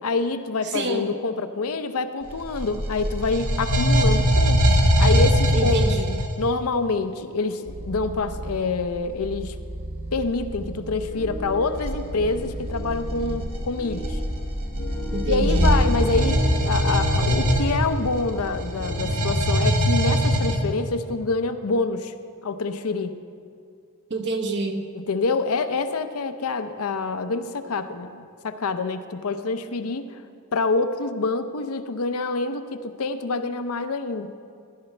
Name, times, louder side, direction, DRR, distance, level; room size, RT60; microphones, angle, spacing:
voice 1, 0.0-5.8 6.4-9.6 10.1-14.2 15.3-22.1 22.4-23.1 24.9-30.2 30.5-34.4, left 3 dB, 75° left, 10 dB, 0.6 m, -26 dB
voice 2, 0.7-1.0 5.5-6.2 15.1-15.8 24.1-24.8, right 2 dB, 50° right, 4 dB, 0.9 m, -27 dB
sound 1, 2.3-6.4 11.7-12.0 12.8-20.6, equal, 65° right, 1.4 m, -21 dB
sound 2, 7.7-13.5, right 1 dB, 35° right, 0.5 m, -36 dB
sound 3, 11.1-19.4, left 2 dB, 50° left, 1.0 m, -34 dB
15.5 x 11.0 x 3.3 m, 2.3 s
head